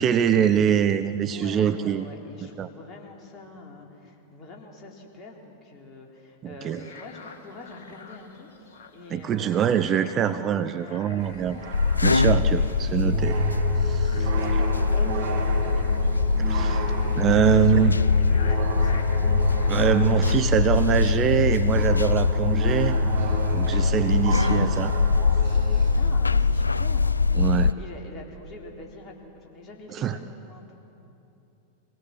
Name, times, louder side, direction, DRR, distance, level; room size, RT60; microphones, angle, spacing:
voice 1, 0.0-2.0 2.6-2.7 6.6-6.8 9.1-11.6 12.0-13.4 13.8-14.3 16.5-16.8 17.2-17.9 19.7-23.0 23.5-25.0 25.5-25.8 27.4-27.7 29.9-30.2, right 9 dB, 30° right, 11 dB, 0.7 m, -24 dB
voice 2, 1.3-10.3 10.8-11.0 14.2-19.3 25.9-27.2 27.4-30.8, left 2 dB, 30° left, -1 dB, 3.8 m, -44 dB
sound 1, 6.7-20.5, left 4 dB, 60° left, 2.4 m, -48 dB
sound 2, 11.2-26.0, right 3 dB, 50° right, 3.0 m, -33 dB
sound 3, 11.7-27.7, left 4 dB, 80° left, 0.4 m, -22 dB
24.0 x 18.0 x 7.5 m, 2.9 s
figure-of-eight pair, 90°, 0 cm